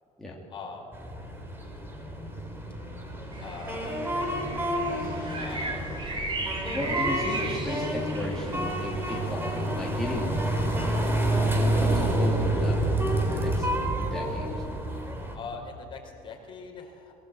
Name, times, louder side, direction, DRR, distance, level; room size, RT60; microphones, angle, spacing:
voice 1, 0.5-0.9 3.4-4.0 5.4-5.8 15.3-17.1, left 5 dB, 35° left, 1 dB, 4.5 m, -41 dB
sound 1, 0.9-15.4, right 1 dB, 15° right, 3.4 m, -29 dB
sound 2, 3.3-9.1, right 3 dB, 30° right, 4.2 m, -36 dB
voice 2, 6.7-10.4 11.6-13.8 14.1-14.7, left 1 dB, 5° left, -4 dB, 2.6 m, -34 dB
22.0 x 18.5 x 8.3 m, 2.7 s
cardioid pair, 145°, 16 cm